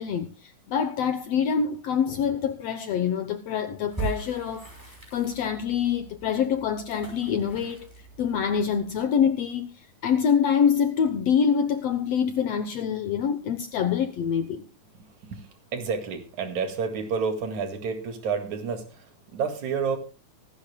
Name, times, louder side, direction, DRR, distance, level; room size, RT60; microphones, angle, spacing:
voice 1, 0.0-4.7 5.1-7.9 8.2-9.7 10.0-14.7, left 7 dB, 70° left, 1.7 m, -25 dB
sound 1, 3.9-9.0, right 4 dB, 5° right, 5.9 m, -40 dB
voice 2, 14.9-20.0, right 5 dB, 70° right, 3.3 m, -30 dB
25.0 x 11.0 x 2.2 m
omnidirectional pair, 3.5 m